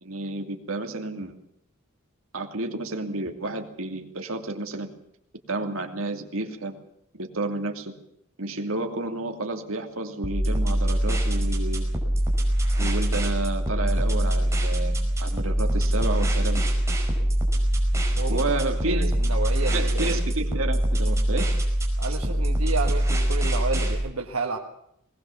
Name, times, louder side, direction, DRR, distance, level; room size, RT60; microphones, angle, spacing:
voice 1, 0.0-1.4 2.3-4.9 5.5-6.8 7.1-7.9 8.4-11.9 12.8-16.6 18.3-19.1 19.7-21.5, right 2 dB, 70° right, 4 dB, 2.6 m, -31 dB
sound 1, 10.2-23.9, right 1 dB, 15° right, 5.2 m, -24 dB
voice 2, 18.9-20.2 22.0-24.6, right 3 dB, 85° right, 1 dB, 1.7 m, -31 dB
20.5 x 19.0 x 7.2 m, 0.75 s
head